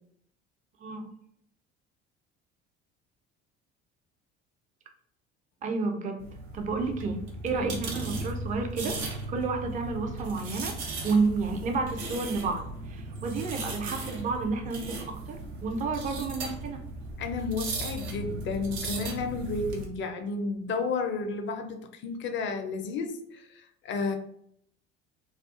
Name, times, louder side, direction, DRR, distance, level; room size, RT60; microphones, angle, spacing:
voice 1, 0.8-1.1 5.6-6.3 6.5-9.0 9.3-10.7 11.0-16.8, right 4 dB, 25° right, 4 dB, 0.4 m, -31 dB
sound 1, 6.2-19.8, right 2 dB, 75° right, 0.7 m, -37 dB
voice 2, 17.2-24.2, left 4 dB, 35° left, 6 dB, 0.5 m, -32 dB
2.4 x 2.3 x 2.4 m, 0.69 s
figure-of-eight pair, 60°, 33 cm